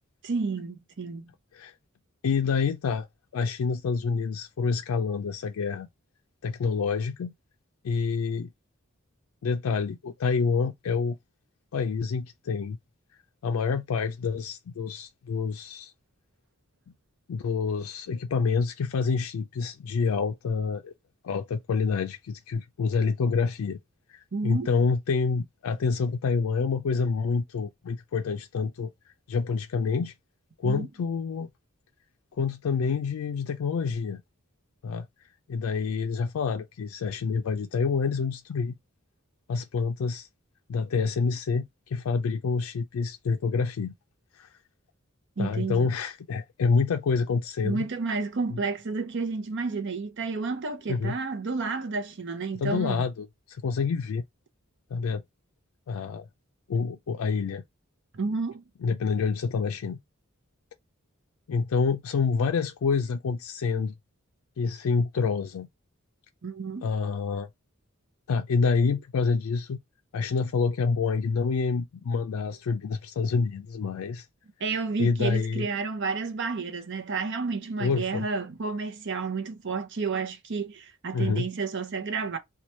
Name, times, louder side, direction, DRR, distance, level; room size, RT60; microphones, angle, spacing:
voice 1, 0.2-1.3 24.3-24.7 30.6-30.9 45.4-45.9 47.6-53.0 58.1-58.6 66.4-66.9 74.6-82.4, right 4 dB, 60° right, 0.7 m, -31 dB
voice 2, 2.2-3.1 3.3-5.9 6.4-7.3 7.8-8.5 9.4-11.2 11.7-12.8 13.4-15.9 17.3-20.9 21.2-23.8 24.1-28.9 29.3-30.1 30.6-31.5 32.4-34.2 34.8-35.1 35.5-38.7 39.5-40.3 40.7-43.9 44.3-44.5 45.4-47.9 50.9-51.1 52.6-54.2 54.9-55.2 55.9-56.2 56.7-57.6 58.8-60.0 61.5-63.9 64.6-65.7 66.8-67.5 68.3-69.8 70.1-74.3 75.0-75.7 77.8-78.3 81.1-81.5, left 5 dB, 90° left, 0.4 m, -27 dB
3.0 x 2.3 x 4.2 m
head